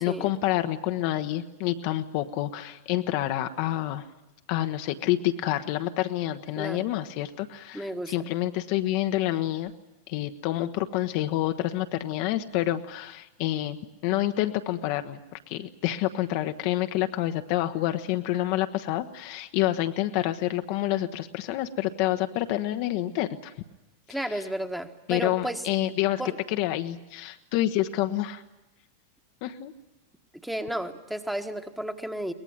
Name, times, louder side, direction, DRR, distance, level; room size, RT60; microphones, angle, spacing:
voice 1, 0.0-4.0 4.5-9.7 10.1-23.5 24.2-24.4 25.1-26.2 26.5-28.4 29.4-29.7, left 14 dB, 45° left, 7 dB, 1.0 m, -28 dB
voice 2, 6.6-6.9 7.7-8.1 24.1-25.6 26.2-26.4 30.4-32.3, right 1 dB, 5° right, 8 dB, 1.5 m, -33 dB
23.0 x 19.5 x 9.3 m, 0.97 s
figure-of-eight pair, 90°, 0 cm